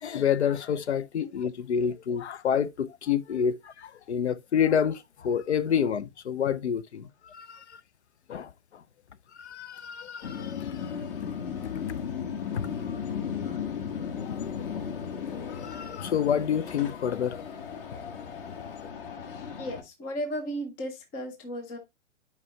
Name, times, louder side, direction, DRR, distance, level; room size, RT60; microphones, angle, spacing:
voice 1, 0.0-7.8 8.3-8.8 9.4-10.9 11.2-11.4 12.5-12.7 14.2-14.8 15.3-17.5 17.7-17.8, left 8 dB, 65° left, 0.6 m, -29 dB
sound 1, 10.2-19.8, left 7 dB, 50° left, 1.5 m, -35 dB
voice 2, 19.6-21.8, equal, 5° left, 0.3 m, -35 dB
9.7 x 4.6 x 2.7 m
figure-of-eight pair, 115°, 36 cm